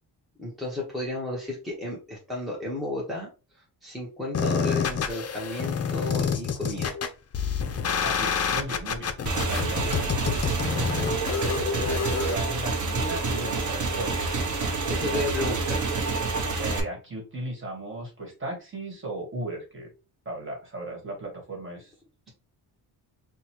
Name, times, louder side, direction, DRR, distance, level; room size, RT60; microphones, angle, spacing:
voice 1, 0.4-3.3 3.8-7.0 14.6-15.8, left 1 dB, ahead, -4 dB, 0.9 m, -33 dB
sound 1, 4.3-12.3, left 6 dB, 40° left, 0.5 m, -28 dB
voice 2, 8.0-9.2 9.5-14.1 14.9-15.3 16.6-19.9 20.2-21.9, right 2 dB, 30° right, 0 dB, 1.5 m, -36 dB
Motorcycle / Engine, 9.3-16.8, right 3 dB, 45° right, 0.8 m, -28 dB
3.1 x 2.3 x 4.3 m, 0.32 s
wide cardioid pair, 140°, 41 cm